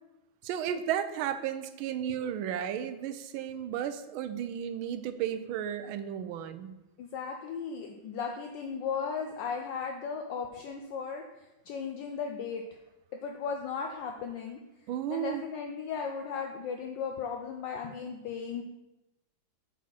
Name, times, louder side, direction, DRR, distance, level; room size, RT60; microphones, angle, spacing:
voice 1, 0.4-6.7 14.9-15.4, right 9 dB, 80° right, 11 dB, 1.4 m, -34 dB
voice 2, 7.0-11.2 11.7-12.6 13.2-14.6 15.1-18.6, left 6 dB, 70° left, 3 dB, 1.2 m, -36 dB
7.4 x 4.1 x 5.6 m, 0.96 s
omnidirectional pair, 2.2 m